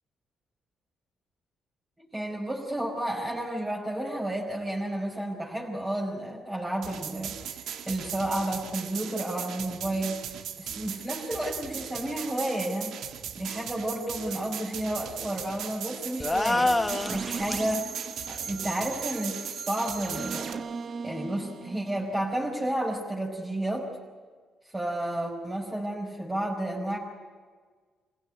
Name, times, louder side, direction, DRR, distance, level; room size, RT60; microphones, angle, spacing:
voice 1, 2.0-7.6 7.8-12.9 13.4-17.9 18.3-20.6 21.0-23.9 24.7-27.0, right 1 dB, 15° right, -4 dB, 4.9 m, -31 dB
sound 1, 6.8-20.5, right 9 dB, 75° right, 1.6 m, -38 dB
sound 2, 16.2-17.7, left 2 dB, 15° left, 1.4 m, -26 dB
sound 3, 16.9-22.7, right 5 dB, 50° right, 1.0 m, -38 dB
25.0 x 16.0 x 9.6 m, 1.5 s
cardioid pair, 90°, 0 cm